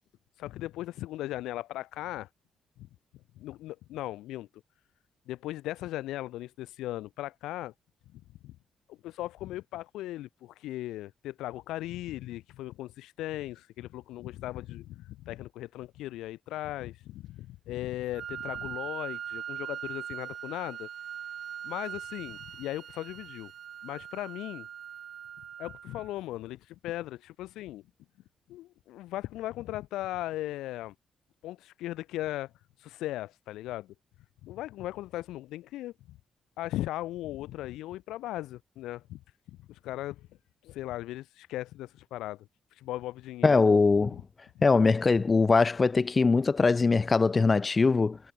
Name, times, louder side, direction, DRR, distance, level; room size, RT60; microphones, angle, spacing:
voice 1, 0.4-2.3 3.4-4.5 5.3-7.7 8.4-8.5 8.9-20.9 21.6-23.5 23.8-24.7 25.6-27.8 28.5-30.9 31.4-32.5 32.8-33.9 34.4-35.9 36.6-39.2 39.7-40.3 40.6-42.4 42.7-43.6, left 15 dB, 90° left, 1.6 m, -37 dB
Wind instrument woodwind instrument, 18.1-26.1, right 9 dB, 60° right, 1.4 m, -41 dB
voice 2, 43.4-44.2 44.6-48.2, left 4 dB, 30° left, 0.4 m, -22 dB
cardioid pair, 90°, 0 cm